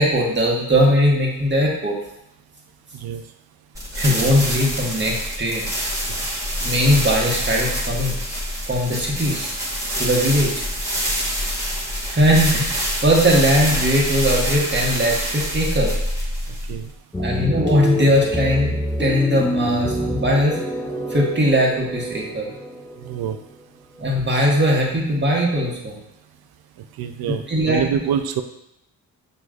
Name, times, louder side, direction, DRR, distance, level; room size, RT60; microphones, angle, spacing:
voice 1, 0.0-2.0 3.9-5.6 6.6-8.2 8.7-9.5 10.0-10.6 12.0-16.0 17.2-20.6 21.1-22.5 24.0-26.0 27.5-27.8, equal, 25° right, -3 dB, 1.4 m, -19 dB
sound 1, 3.7-16.9, equal, 10° right, 1.3 m, -26 dB
sound 2, 17.1-24.6, left 1 dB, 10° left, 0.4 m, -27 dB
voice 2, 23.0-23.4 27.0-28.4, right 8 dB, 65° right, 8 dB, 0.5 m, -25 dB
6.0 x 3.2 x 2.4 m, 0.81 s
supercardioid pair, 55°, 41 cm